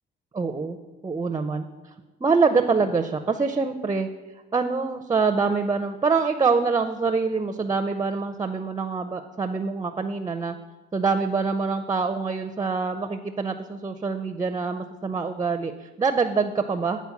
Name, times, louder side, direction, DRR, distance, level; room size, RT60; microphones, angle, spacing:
voice 1, 0.3-0.8 1.0-1.6 2.2-4.1 4.5-10.5 10.9-17.0, right 4 dB, 20° right, 8 dB, 0.5 m, -25 dB
9.5 x 4.2 x 7.1 m, 1.2 s
cardioid pair, 90°, 20 cm